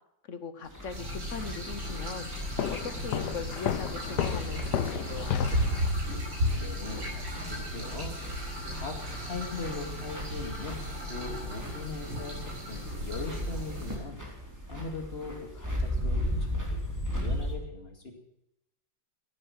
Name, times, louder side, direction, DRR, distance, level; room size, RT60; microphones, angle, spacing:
voice 1, 0.3-5.9, left 5 dB, 50° left, 11 dB, 1.0 m, -40 dB
sound 1, 0.6-17.6, equal, 10° right, 3.0 m, -37 dB
sound 2, 0.9-14.0, equal, 85° right, 5.6 m, -35 dB
Walk footsteps, 2.6-5.9, left 10 dB, 70° left, 1.3 m, -32 dB
voice 2, 6.5-8.1 8.7-10.8 11.1-14.2 14.7-18.1, left 3 dB, 35° left, 3 dB, 2.4 m, -40 dB
15.0 x 8.6 x 7.3 m, 0.84 s
omnidirectional pair, 2.0 m